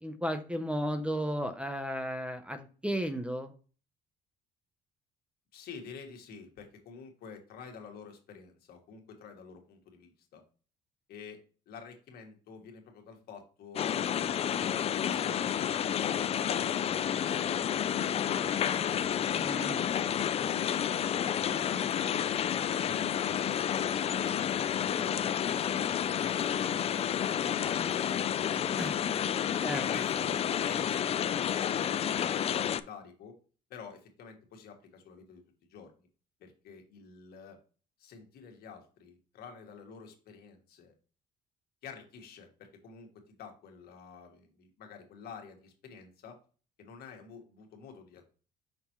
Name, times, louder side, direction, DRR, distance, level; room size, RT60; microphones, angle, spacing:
voice 1, 0.0-3.5 19.4-19.8 28.8-28.9 29.6-29.8, equal, 5° right, 9 dB, 0.6 m, -34 dB
voice 2, 5.5-10.4 11.1-14.1 14.5-15.6 15.9-18.0 18.7-21.8 22.6-23.4 23.8-28.9 29.7-33.4 33.7-35.4 35.7-35.9 36.4-37.6 38.0-40.9 41.8-46.4 46.8-48.2, left 6 dB, 70° left, 4 dB, 1.5 m, -49 dB
sound 1, 13.8-32.8, left 9 dB, 35° left, 0.4 m, -30 dB
5.8 x 5.4 x 3.0 m, 0.38 s
cardioid pair, 110°, 17 cm